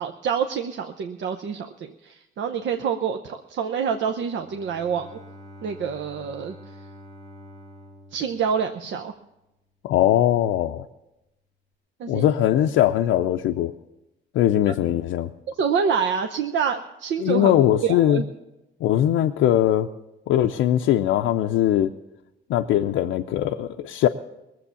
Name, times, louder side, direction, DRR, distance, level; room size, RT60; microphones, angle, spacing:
voice 1, 0.0-5.2 5.6-6.5 8.1-9.1 12.0-12.3 15.6-17.5 17.8-18.2, right 7 dB, 70° right, 6 dB, 0.8 m, -27 dB
Bowed string instrument, 4.3-9.3, left 1 dB, 30° right, 1.8 m, -46 dB
voice 2, 9.8-10.9 12.1-13.7 14.3-15.3 17.2-18.2 18.8-19.9 20.3-21.9 22.5-24.1, left 12 dB, 85° left, 4 dB, 0.5 m, -20 dB
19.5 x 7.7 x 6.9 m, 0.96 s
cardioid pair, 90°, 20 cm